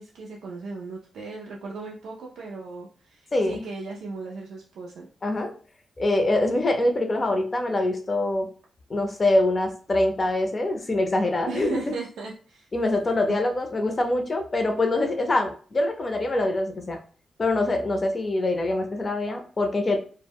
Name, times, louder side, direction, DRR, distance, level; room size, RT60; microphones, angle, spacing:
voice 1, 0.0-5.1 11.4-12.7 13.3-13.4, right 3 dB, 85° right, -3 dB, 0.3 m, -36 dB
voice 2, 3.3-3.6 5.2-5.5 6.0-8.5 8.9-11.8 12.7-17.0 17.4-20.0, left 2 dB, 40° left, 4 dB, 0.6 m, -24 dB
2.1 x 2.0 x 3.4 m, 0.41 s
supercardioid pair, 55°, 0 cm